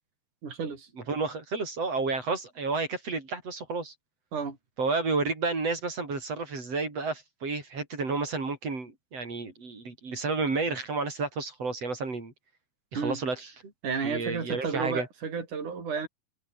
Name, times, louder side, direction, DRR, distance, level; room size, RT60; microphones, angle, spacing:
voice 1, 0.4-0.9 4.3-4.6 12.9-13.2 13.8-16.1, right 5 dB, 55° right, 6.6 m, -32 dB
voice 2, 1.0-3.9 4.8-12.3 12.9-13.7 14.0-15.1, right 3 dB, 40° right, 6.7 m, -31 dB
omnidirectional pair, 4.1 m